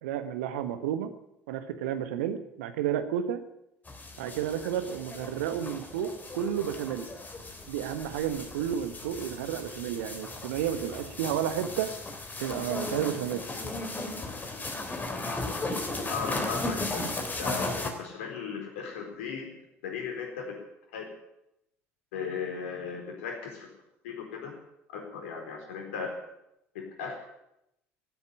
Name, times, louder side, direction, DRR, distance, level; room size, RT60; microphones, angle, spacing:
voice 1, 0.0-1.1 1.5-3.4 4.2-7.1 7.7-11.9 12.4-13.4, right 10 dB, 70° right, 10 dB, 1.4 m, -31 dB
sound 1, 3.9-17.9, left 2 dB, 25° left, 3.2 m, -36 dB
voice 2, 16.1-19.5 19.8-20.5 20.9-21.1 22.1-23.7 24.0-24.5 24.9-26.2 26.7-27.2, left 5 dB, 70° left, 2 dB, 4.0 m, -36 dB
15.5 x 8.8 x 9.9 m, 0.83 s
figure-of-eight pair, 60°, 7 cm